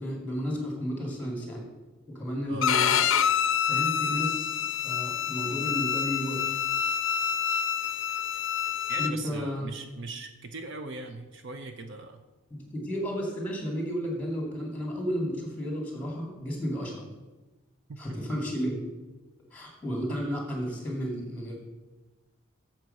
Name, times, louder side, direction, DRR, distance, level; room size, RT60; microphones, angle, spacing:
voice 1, 0.0-1.7 2.1-3.0 3.6-6.6 9.0-9.6 12.5-17.0 18.0-18.8 19.5-21.6, equal, 10° left, 0 dB, 2.2 m, -32 dB
Bowed string instrument, 2.6-9.1, left 8 dB, 60° left, 0.5 m, -27 dB
voice 2, 8.9-12.2 17.9-18.0, right 3 dB, 55° right, 7 dB, 0.6 m, -40 dB
7.8 x 7.3 x 5.3 m, 1.2 s
head